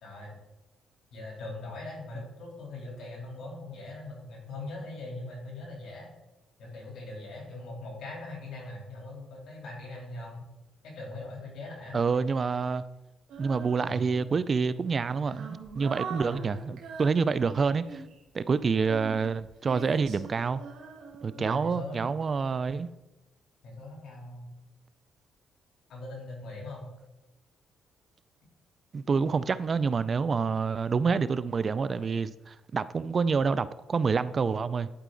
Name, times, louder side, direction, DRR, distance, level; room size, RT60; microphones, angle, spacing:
voice 1, 0.0-0.3 1.1-6.1 6.6-10.4 10.8-12.0 13.8-14.1 16.3-16.6 21.3-22.1 23.6-24.5 25.9-26.9, left 2 dB, 70° left, 3.2 m, -41 dB
voice 2, 11.9-12.8 13.4-18.0 18.3-20.6 21.2-22.9 28.9-34.9, right 5 dB, 40° right, 0.3 m, -27 dB
Female singing, 13.3-14.4 14.9-18.2 18.8-22.0, right 5 dB, 80° right, 1.6 m, -43 dB
11.0 x 4.9 x 3.8 m
cardioid pair, 90°, 0 cm